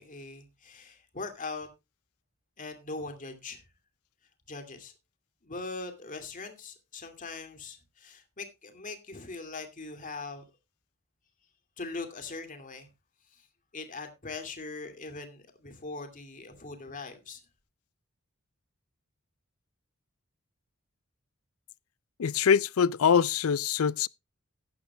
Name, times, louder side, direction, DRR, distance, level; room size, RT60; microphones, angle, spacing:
voice 1, 0.0-1.7 2.6-3.6 4.5-4.9 5.4-10.4 11.8-12.9 13.3-13.5 13.7-17.4, left 3 dB, 40° left, 2.4 m, -41 dB
voice 2, 22.2-24.1, left 7 dB, 75° left, 0.5 m, -24 dB
15.5 x 10.5 x 2.3 m
head